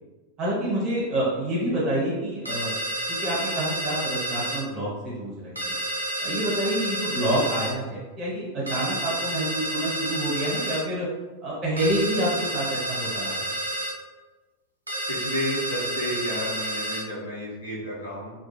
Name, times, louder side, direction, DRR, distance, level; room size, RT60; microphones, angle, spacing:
voice 1, 0.4-2.7 3.2-5.8 6.2-11.1 11.4-13.5, right 1 dB, 30° right, -6 dB, 1.3 m, -27 dB
sound 1, 2.5-4.6 5.6-7.7 8.7-10.9 11.8-14.0 14.9-17.1, right 1 dB, 85° right, 0.5 m, -30 dB
voice 2, 15.1-18.3, equal, 75° left, -6 dB, 0.9 m, -31 dB
2.3 x 2.2 x 3.1 m, 1.2 s
figure-of-eight pair, 90°, 0 cm